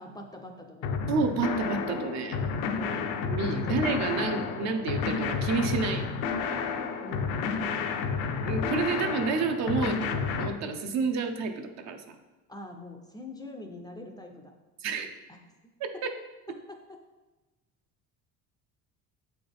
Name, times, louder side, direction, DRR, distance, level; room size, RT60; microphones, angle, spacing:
voice 1, 0.0-1.0 2.4-3.1 3.7-3.8 7.0-7.9 12.5-14.5 15.9-16.0 16.5-17.0, left 2 dB, 15° left, 3 dB, 0.4 m, -44 dB
sound 1, 0.8-10.5, left 5 dB, 90° left, 0.6 m, -31 dB
voice 2, 1.1-2.4 3.2-6.1 8.4-12.0 14.8-15.1 16.0-16.1, right 4 dB, 55° right, 6 dB, 0.7 m, -29 dB
7.7 x 4.1 x 3.4 m, 1.1 s
cardioid pair, 145°, 32 cm